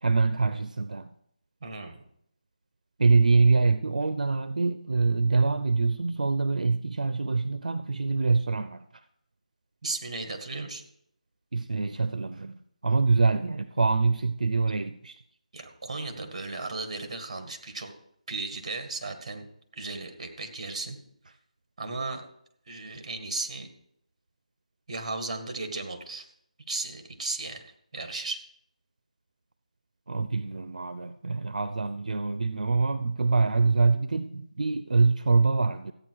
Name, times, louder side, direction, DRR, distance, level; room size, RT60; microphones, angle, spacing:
voice 1, 0.0-1.1 3.0-8.8 11.5-15.2 30.1-35.9, right 4 dB, 80° right, 11 dB, 0.6 m, -25 dB
voice 2, 1.6-2.0 9.8-10.8 15.5-17.9 18.3-19.5 19.7-21.0 21.8-22.3 22.7-23.7 24.9-26.3 26.7-27.6 27.9-28.4, right 3 dB, 45° right, 6 dB, 1.9 m, -35 dB
14.0 x 9.0 x 4.7 m, 0.72 s
figure-of-eight pair, 165°, 4 cm